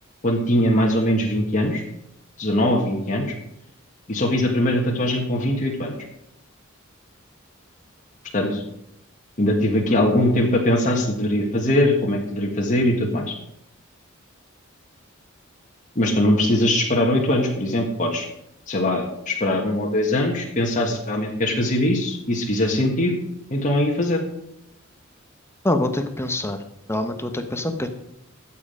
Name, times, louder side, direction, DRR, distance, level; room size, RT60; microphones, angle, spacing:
voice 1, 0.2-1.8 2.4-3.3 4.1-5.9 8.3-8.6 9.4-13.3 15.9-18.3 18.7-23.1 23.5-24.2, left 1 dB, 40° left, 0 dB, 1.6 m, -21 dB
voice 2, 25.6-26.6 26.9-27.9, left 1 dB, 10° left, 7 dB, 1.0 m, -24 dB
13.0 x 7.5 x 5.1 m, 0.80 s
head